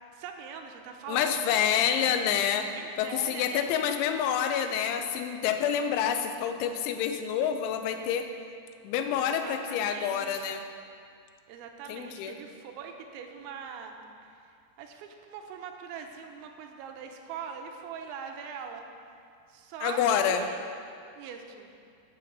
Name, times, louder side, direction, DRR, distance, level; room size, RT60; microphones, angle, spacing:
voice 1, 0.1-1.6 2.0-2.2 3.0-3.7 9.2-10.5 11.5-14.0 14.8-18.8 19.5-20.6 21.2-21.8, right 6 dB, 90° right, 4 dB, 3.1 m, -42 dB
voice 2, 1.1-2.7 3.0-8.3 8.8-10.6 11.9-12.4 19.8-20.4, left 8 dB, 90° left, 7 dB, 3.1 m, -27 dB
11.5 x 5.6 x 6.7 m, 2.4 s
omnidirectional pair, 5.2 m